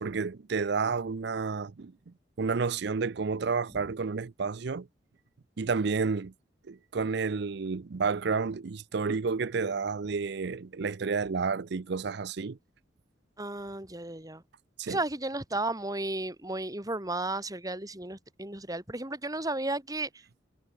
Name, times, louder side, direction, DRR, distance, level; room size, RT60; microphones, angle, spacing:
voice 1, 0.0-4.9 5.6-6.3 6.7-12.6 14.8-15.0, right 5 dB, 60° right, 0.5 m, -31 dB
voice 2, 13.4-14.4 14.9-20.2, right 2 dB, 20° right, 4.1 m, -34 dB
head